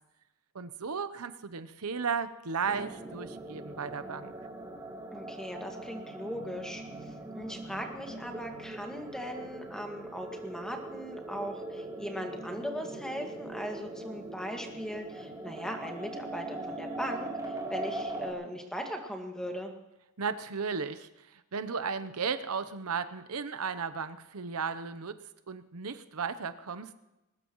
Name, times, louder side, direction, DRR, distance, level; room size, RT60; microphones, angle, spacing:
voice 1, 0.5-4.3 20.2-25.2 25.5-27.0, right 5 dB, 80° right, 11 dB, 0.8 m, -35 dB
sound 1, 2.6-18.3, right 2 dB, 20° right, 3.2 m, -41 dB
voice 2, 5.1-6.8 7.3-19.7, equal, 5° left, 2 dB, 2.0 m, -39 dB
21.0 x 19.5 x 3.1 m, 0.98 s
head